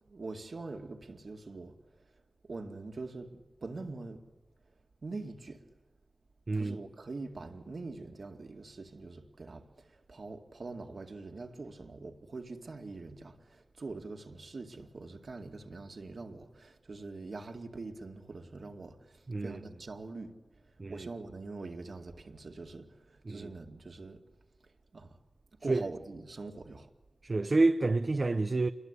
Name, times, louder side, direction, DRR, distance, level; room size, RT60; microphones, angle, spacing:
voice 1, 0.1-1.8 2.4-4.2 5.0-5.7 6.5-20.4 20.9-24.2 24.9-25.2 25.6-26.9, right 3 dB, 60° right, 2.3 m, -44 dB
voice 2, 6.5-6.8 19.3-19.6 20.8-21.1 23.3-23.5 25.7-25.8 27.2-28.7, right 3 dB, 45° right, 0.8 m, -28 dB
29.0 x 22.0 x 8.4 m
wide cardioid pair, 90°, 0 cm